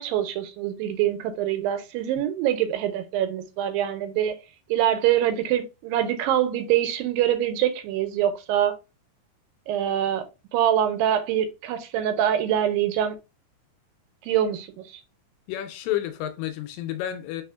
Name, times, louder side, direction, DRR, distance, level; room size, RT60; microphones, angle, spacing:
voice 1, 0.0-4.4 4.7-8.8 9.7-10.2 10.5-13.2 14.2-14.8, right 11 dB, 85° right, 2.3 m, -24 dB
voice 2, 15.5-17.4, left 12 dB, 80° left, 2.3 m, -30 dB
4.4 x 4.2 x 2.3 m
omnidirectional pair, 4.1 m